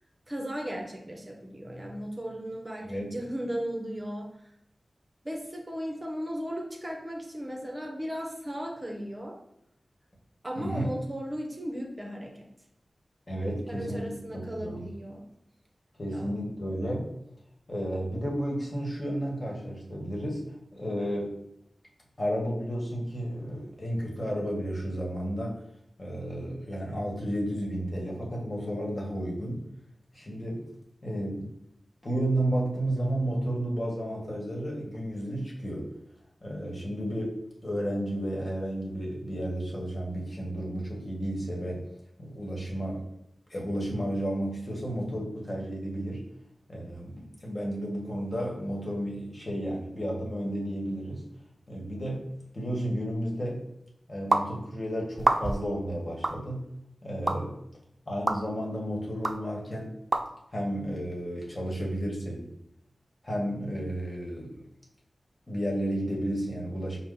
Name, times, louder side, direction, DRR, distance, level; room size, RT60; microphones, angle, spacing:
voice 1, 0.3-4.5 5.2-9.4 10.4-12.5 13.6-15.3 16.1-16.3, equal, 25° right, 0 dB, 0.7 m, -36 dB
voice 2, 2.8-3.1 10.6-10.9 13.3-14.8 16.0-17.1 17.7-20.4 20.7-21.3 22.2-25.6 26.0-29.6 30.1-30.6 31.0-31.5 32.0-35.9 36.4-37.4 37.6-41.8 42.2-43.1 43.5-46.2 46.7-51.2 51.7-52.2 52.5-53.6 54.1-56.6 57.0-57.5 58.1-59.9 60.5-62.5 63.2-64.6 65.5-67.0, equal, 40° left, -3 dB, 1.3 m, -32 dB
sound 1, 54.3-54.5 55.2-55.7 56.2-56.4 57.3-57.4 58.3-58.4 59.2-59.4 60.1-60.2, right 2 dB, 50° right, 0.3 m, -25 dB
5.1 x 2.1 x 3.8 m, 0.78 s
cardioid pair, 55°, 0 cm